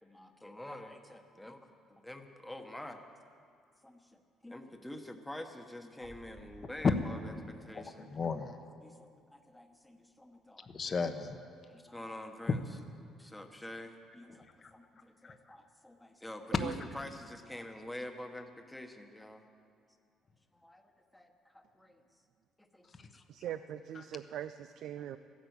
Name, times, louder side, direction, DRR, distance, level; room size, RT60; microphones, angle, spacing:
voice 1, 0.0-3.0 3.8-8.2 8.8-10.7 11.7-12.6 13.2-19.4 20.5-22.0 22.6-23.1 23.5-23.6 24.0-24.3, left 1 dB, 5° left, 5 dB, 1.2 m, -47 dB
sound 1, 6.0-9.3 9.7-11.9 12.2-12.6 12.9-14.8 15.1-15.2 15.5-15.9 16.3-16.4 18.6-18.7, right 1 dB, 45° right, 2.4 m, -60 dB
voice 2, 7.7-8.6 10.7-11.4 14.6-14.7 15.2-15.3 16.5-16.6 22.9-23.2 23.9-24.1, left 5 dB, 35° left, 8 dB, 1.0 m, -36 dB
voice 3, 23.3-25.2, right 11 dB, 65° right, 11 dB, 0.4 m, -41 dB
14.5 x 10.5 x 8.1 m, 2.3 s
cardioid pair, 120°, 0 cm